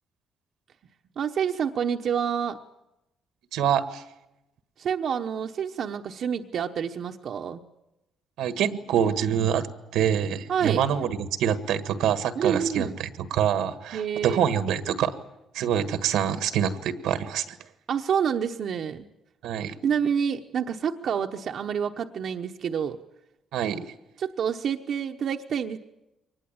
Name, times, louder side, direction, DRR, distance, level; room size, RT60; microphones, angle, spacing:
voice 1, 1.2-2.6 4.8-7.6 10.5-10.8 12.4-13.0 13.9-14.7 17.9-19.1 19.8-23.0 24.2-25.8, right 7 dB, 65° right, 3 dB, 1.0 m, -28 dB
voice 2, 3.5-4.0 8.4-9.7 9.9-15.1 15.5-17.6 19.4-19.7 23.5-23.8, right 9 dB, 90° right, 11 dB, 1.6 m, -25 dB
23.5 x 20.0 x 8.8 m, 0.94 s
cardioid pair, 90°, 0 cm